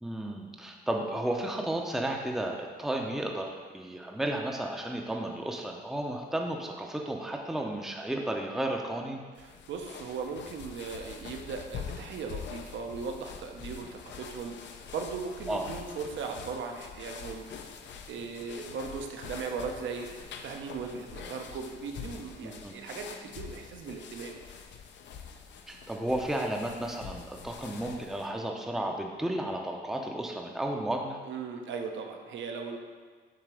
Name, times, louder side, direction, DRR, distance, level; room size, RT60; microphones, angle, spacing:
voice 1, 0.0-9.2 15.5-15.6 22.4-22.7 25.7-31.2, right 1 dB, ahead, 1 dB, 0.6 m, -33 dB
sound 1, 9.4-28.3, left 6 dB, 65° left, 0.6 m, -45 dB
voice 2, 9.4-17.5 18.1-24.4 31.2-32.8, right 5 dB, 70° right, 3 dB, 0.8 m, -38 dB
7.6 x 2.9 x 4.9 m, 1.5 s
cardioid pair, 90°, 20 cm